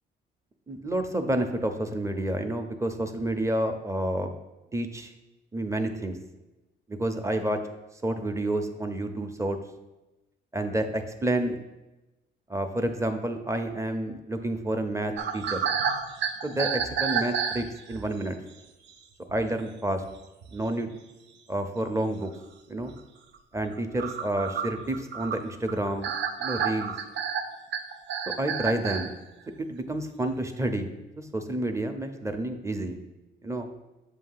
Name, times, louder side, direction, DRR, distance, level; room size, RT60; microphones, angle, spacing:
voice 1, 0.7-4.4 4.7-5.1 5.5-6.2 6.9-7.6 8.0-9.6 10.5-11.6 12.5-15.6 16.4-18.4 19.3-20.0 20.5-20.9 21.5-22.3 22.7-22.9 23.5-26.1 26.4-26.9 28.4-29.1 29.6-33.0 33.4-33.7, right 1 dB, 15° right, 7 dB, 0.6 m, -29 dB
sound 1, 15.2-18.1 18.9-19.0 19.3-19.5 20.0-20.1 20.4-20.9 21.5-21.6 21.9-22.0 22.8-22.9 23.3-29.1, right 7 dB, 65° right, 0.6 m, -30 dB
7.3 x 2.8 x 5.6 m, 1.0 s
cardioid pair, 90°, 20 cm